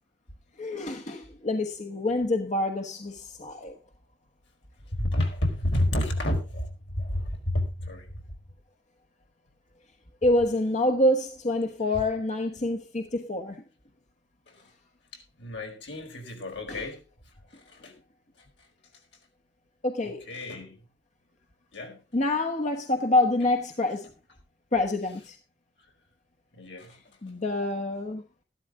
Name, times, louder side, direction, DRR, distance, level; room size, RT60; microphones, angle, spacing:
voice 1, 0.6-3.8 10.2-13.6 16.7-16.9 19.8-20.3 22.1-24.1 24.7-25.4 27.2-28.2, left 1 dB, 40° left, 1.2 m, -26 dB
voice 2, 4.9-8.1 14.5-14.6 15.4-17.0 17.7-17.9 20.0-20.8 21.7-22.0 26.5-27.0, left 1 dB, 75° left, 4.8 m, -30 dB
14.0 x 12.5 x 3.7 m
head